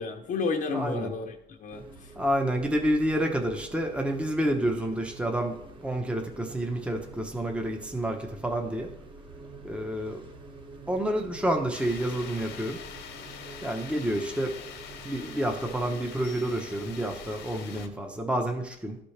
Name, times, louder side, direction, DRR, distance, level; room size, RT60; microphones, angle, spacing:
voice 1, 0.0-2.1, left 4 dB, 50° left, 2 dB, 0.8 m, -32 dB
voice 2, 0.7-1.1 2.1-8.9 9.6-10.2 10.9-12.8 13.6-14.5 15.0-19.0, right 1 dB, 5° right, 3 dB, 0.9 m, -29 dB
sound 1, 1.7-17.8, right 3 dB, 30° right, 1.2 m, -47 dB
sound 2, 11.7-17.9, left 7 dB, 85° left, 1.1 m, -44 dB
13.0 x 4.3 x 3.3 m, 0.79 s
cardioid pair, 110°, 17 cm